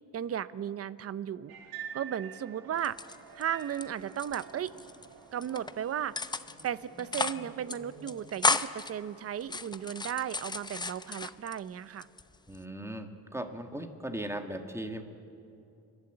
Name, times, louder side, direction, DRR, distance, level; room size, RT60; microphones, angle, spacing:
voice 1, 0.1-1.5 1.9-3.0 3.3-4.7 5.3-6.2 6.6-12.1, right 9 dB, 40° right, 17 dB, 0.7 m, -35 dB
sound 1, 1.5-8.3, right 7 dB, 75° right, 2.3 m, -48 dB
sound 2, 2.8-3.8 4.1-5.1 5.4-5.7 6.2-6.7 7.0-7.4 7.7-7.8 8.1-8.9 9.4-11.6 12.0-12.6, left 3 dB, 10° left, 0.6 m, -33 dB
voice 2, 12.5-15.0, right 1 dB, 5° right, 6 dB, 1.6 m, -38 dB
29.5 x 11.5 x 8.0 m, 2.7 s
cardioid pair, 95°, 36 cm